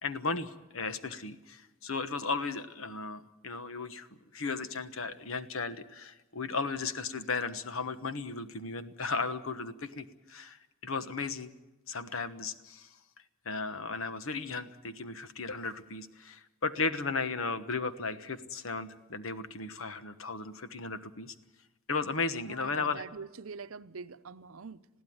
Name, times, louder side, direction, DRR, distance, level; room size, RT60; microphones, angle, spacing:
voice 1, 0.0-11.5 11.9-12.9 13.4-21.3 21.9-23.0, left 4 dB, 80° left, 1.2 m, -35 dB
voice 2, 22.5-24.9, right 5 dB, 85° right, 0.7 m, -44 dB
21.0 x 15.5 x 9.5 m
head